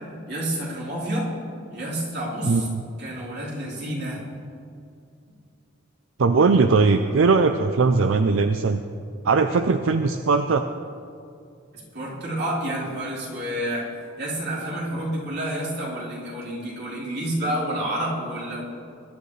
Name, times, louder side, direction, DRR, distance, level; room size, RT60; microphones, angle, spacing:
voice 1, 0.3-1.3 1.7-2.7 3.0-4.2 11.9-13.9 14.2-18.6, right 1 dB, 60° right, -6 dB, 3.9 m, -29 dB
voice 2, 2.4-2.8 6.2-8.8 9.2-10.7, right 4 dB, 85° right, 8 dB, 0.5 m, -19 dB
21.0 x 11.5 x 3.3 m, 2.4 s
head